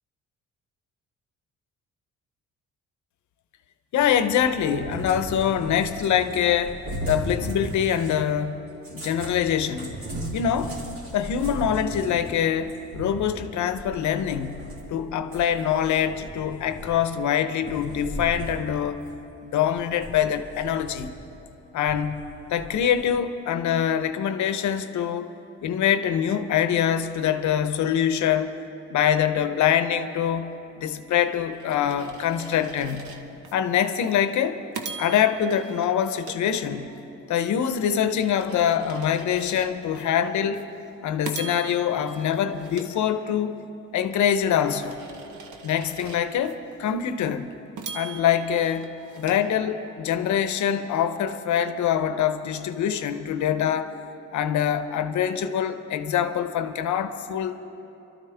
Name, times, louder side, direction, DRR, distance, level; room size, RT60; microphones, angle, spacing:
voice 1, 3.9-8.6 8.9-10.0 10.3-10.8 11.1-19.1 19.4-21.1 21.7-22.2 22.5-25.3 25.6-28.6 28.9-30.5 30.8-33.2 33.5-34.6 35.0-36.9 37.3-40.6 41.0-43.6 43.9-45.0 45.6-47.5 47.9-48.9 49.1-54.0 54.3-57.6, left 9 dB, 70° left, 10 dB, 0.8 m, -24 dB
Cat, 4.0-8.2 8.8-15.0 15.3-17.2 17.6-18.6 19.0-19.1 19.7-21.2 21.9-23.0, right 1 dB, 45° right, 2.8 m, -37 dB
sound 1, 31.1-33.5 34.0-34.2 34.7-37.1 37.6-40.0 40.5-40.7 41.2-43.6 44.1-46.5 47.0-47.1 47.8-50.1, right 5 dB, 75° right, 1.1 m, -42 dB
23.5 x 13.0 x 3.4 m, 3.0 s
cardioid pair, 90°, 30 cm